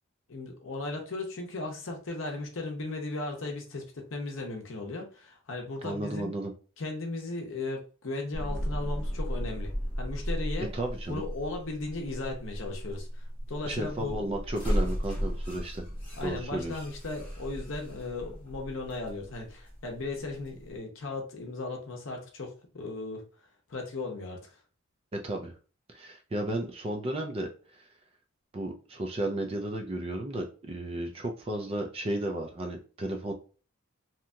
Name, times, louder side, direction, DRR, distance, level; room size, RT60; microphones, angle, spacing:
voice 1, 0.3-6.3 6.8-10.7 11.1-14.3 16.2-23.2 23.7-24.6, left 2 dB, 60° left, 1 dB, 0.7 m, -36 dB
voice 2, 5.8-6.5 10.7-11.2 13.7-15.8 16.2-16.7 25.1-25.5 25.9-27.9 28.5-33.3, right 1 dB, 25° right, 3 dB, 0.4 m, -34 dB
sound 1, 8.3-20.8, equal, 20° left, 1.2 m, -35 dB
2.8 x 2.6 x 2.2 m, 0.37 s
head